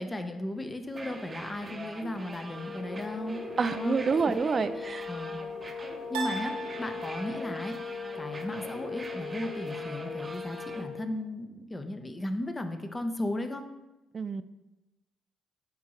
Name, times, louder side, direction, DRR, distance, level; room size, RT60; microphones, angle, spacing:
voice 1, 0.0-3.4 3.7-4.3 4.8-5.4 6.1-13.6, left 1 dB, 25° left, 7 dB, 0.8 m, -36 dB
sound 1, 0.9-10.8, right 2 dB, 30° right, 0.8 m, -43 dB
sound 2, 2.4-11.1, left 5 dB, 55° left, 0.7 m, -40 dB
voice 2, 3.6-5.1 14.1-14.4, right 5 dB, 45° right, 13 dB, 0.4 m, -28 dB
sound 3, 3.6-4.3 6.1-7.6, right 3 dB, 85° right, 1.1 m, -39 dB
9.5 x 3.6 x 3.0 m, 1.0 s
hypercardioid pair, 50°, 0 cm